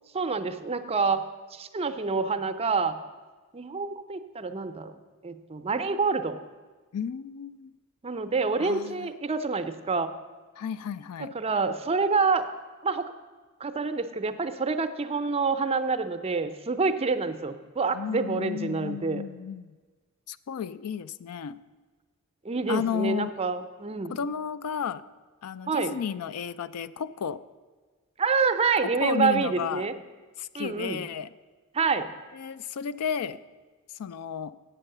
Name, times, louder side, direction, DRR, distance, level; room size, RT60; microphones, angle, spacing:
voice 1, 0.1-1.2 1.5-3.0 3.5-4.9 5.2-6.3 8.0-10.1 11.3-12.4 12.8-13.1 13.6-19.2 22.4-24.2 25.7-25.9 28.2-29.9 30.5-31.0 31.7-32.1, right 4 dB, 25° right, 9 dB, 0.5 m, -27 dB
voice 2, 6.9-7.7 8.6-9.1 10.6-11.3 17.9-19.8 20.3-21.6 22.7-23.3 24.1-25.0 25.4-27.4 29.0-29.9 30.4-31.3 32.3-33.4 34.0-34.5, left 7 dB, 90° left, 15 dB, 0.4 m, -33 dB
8.0 x 7.6 x 6.6 m, 1.4 s
head